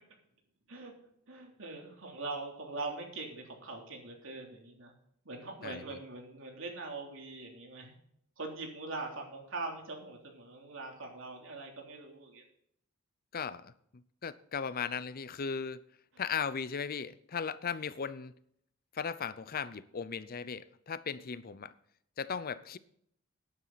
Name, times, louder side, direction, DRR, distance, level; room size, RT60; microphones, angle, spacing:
voice 1, 1.3-4.9 5.2-7.9 8.4-12.4, right 3 dB, 65° right, 3.3 m, -42 dB
voice 2, 13.3-13.7 14.2-15.8 16.2-18.3 18.9-21.7 22.2-22.8, left 6 dB, 45° left, 0.6 m, -37 dB
12.5 x 10.5 x 4.1 m
head